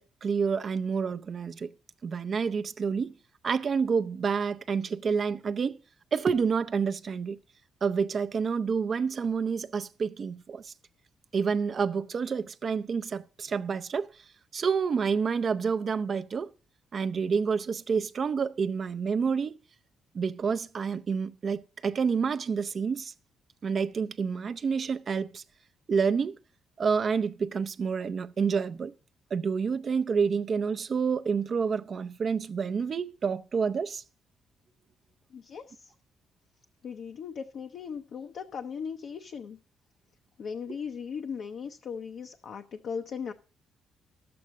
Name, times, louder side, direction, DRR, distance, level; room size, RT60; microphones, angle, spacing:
voice 1, 0.0-1.7 2.0-3.1 3.4-5.8 6.1-7.4 7.8-10.7 11.3-14.1 14.5-16.5 16.9-19.6 20.1-23.1 23.6-25.4 25.9-26.4 26.8-28.9 29.3-34.0, right 5 dB, 45° right, 0.5 m, -28 dB
voice 2, 35.3-35.9 36.8-39.6 40.4-43.3, left 6 dB, 65° left, 0.7 m, -38 dB
11.5 x 7.8 x 6.2 m
cardioid pair, 90°, 0 cm